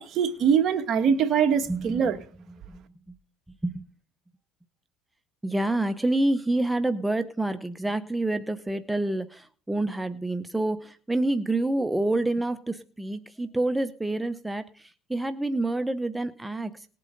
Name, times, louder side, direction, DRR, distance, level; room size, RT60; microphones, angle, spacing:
voice 1, 0.0-2.2, right 7 dB, 45° right, 1.8 m, -23 dB
voice 2, 1.7-2.0 2.7-2.8 3.6-3.8 5.4-16.9, right 2 dB, 5° right, 0.8 m, -28 dB
19.0 x 8.5 x 3.9 m
supercardioid pair, 105°, 0 cm